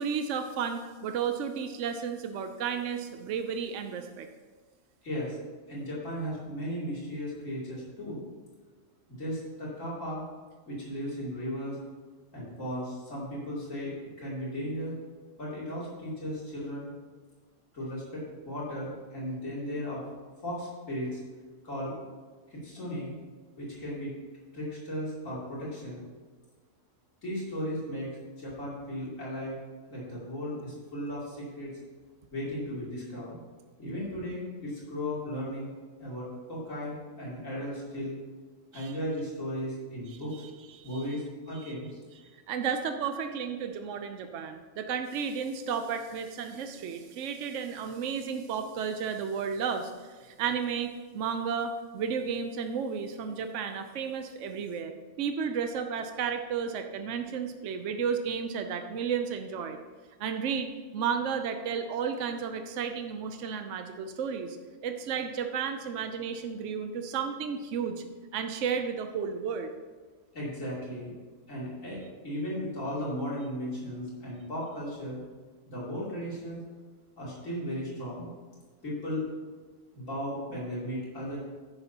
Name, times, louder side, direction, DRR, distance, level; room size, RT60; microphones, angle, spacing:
voice 1, 0.0-4.3 38.7-38.9 40.7-41.0 41.5-41.7 42.5-49.9 50.2-59.8 60.2-64.6 64.8-68.0 68.3-69.7, right 6 dB, 75° right, 7 dB, 1.0 m, -33 dB
voice 2, 5.0-5.4 5.7-8.2 9.1-10.2 10.7-11.8 12.3-14.9 15.4-16.9 17.7-20.0 20.4-21.2 21.6-22.0 22.5-23.1 23.6-24.1 24.5-26.0 27.2-28.1 28.4-29.6 29.9-31.7 32.3-33.4 33.8-35.7 36.0-38.1 38.7-40.4 40.8-42.0 70.3-71.1 71.5-75.2 75.7-76.6 77.2-78.3 78.8-79.3 79.9-81.4, equal, 90° left, -7 dB, 3.4 m, -36 dB
10.5 x 9.8 x 2.9 m, 1.4 s
omnidirectional pair, 1.3 m